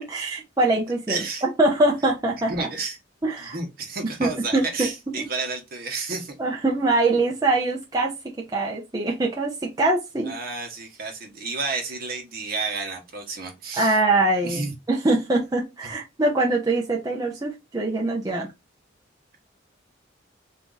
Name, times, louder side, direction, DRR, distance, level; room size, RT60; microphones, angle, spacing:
voice 1, 0.0-2.7 3.2-3.6 4.2-4.9 6.4-10.3 13.7-18.5, right 2 dB, 20° right, 0.6 m, -23 dB
voice 2, 1.1-1.4 2.5-3.0 3.4-6.4 10.3-14.0 14.4-14.7, right 3 dB, 50° right, 1.1 m, -31 dB
3.5 x 2.7 x 3.9 m
head